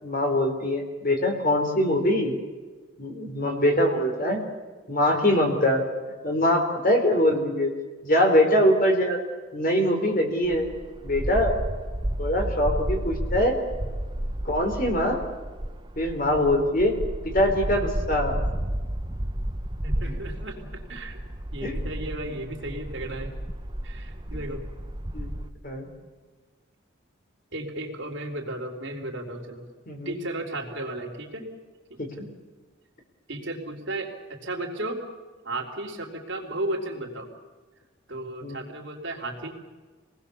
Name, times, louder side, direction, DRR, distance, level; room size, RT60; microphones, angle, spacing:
voice 1, 0.0-2.4 3.0-4.4 4.9-5.8 6.2-7.7 8.0-9.2 9.5-10.7 11.0-11.6 12.2-13.6 14.4-15.2 16.0-16.9 17.2-18.3 20.0-20.2 21.6-21.8 25.1-25.3 25.6-25.9 29.9-30.1 32.0-32.3 38.4-38.6, left 1 dB, 45° left, 3 dB, 4.0 m, -23 dB
sound 1, 10.4-25.5, right 1 dB, 20° right, 1.0 m, -32 dB
voice 2, 19.8-21.2 21.5-23.3 23.8-24.6 27.5-29.6 30.1-31.5 31.9-32.2 33.3-35.0 35.4-37.3 38.1-39.5, right 1 dB, 65° right, 1 dB, 3.8 m, -34 dB
27.0 x 19.5 x 7.1 m, 1.4 s
head